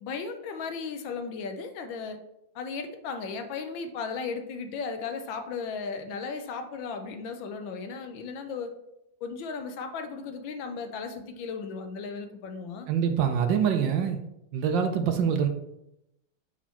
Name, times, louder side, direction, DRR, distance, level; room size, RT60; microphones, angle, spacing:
voice 1, 0.0-2.2 2.5-8.7 9.2-12.9, left 5 dB, 75° left, 6 dB, 1.5 m, -36 dB
voice 2, 12.9-14.2 14.5-15.5, right 7 dB, 70° right, 7 dB, 1.3 m, -25 dB
5.9 x 4.3 x 4.4 m, 0.85 s
omnidirectional pair, 2.2 m